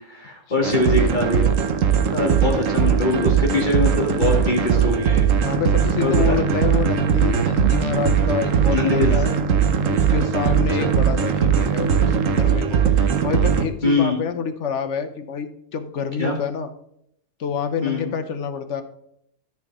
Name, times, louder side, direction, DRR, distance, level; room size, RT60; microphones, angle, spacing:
voice 1, 0.0-1.5 2.1-5.3 6.0-6.4 8.7-9.2 10.4-10.9 13.8-14.2 16.2-16.4 17.8-18.1, left 3 dB, 35° left, -1 dB, 1.8 m, -23 dB
sound 1, 0.6-13.7, right 7 dB, 65° right, 1.2 m, -19 dB
voice 2, 2.4-2.8 5.4-9.4 9.9-16.7 17.4-18.8, left 6 dB, 60° left, 8 dB, 1.2 m, -28 dB
13.0 x 4.8 x 4.9 m, 0.71 s
omnidirectional pair, 1.5 m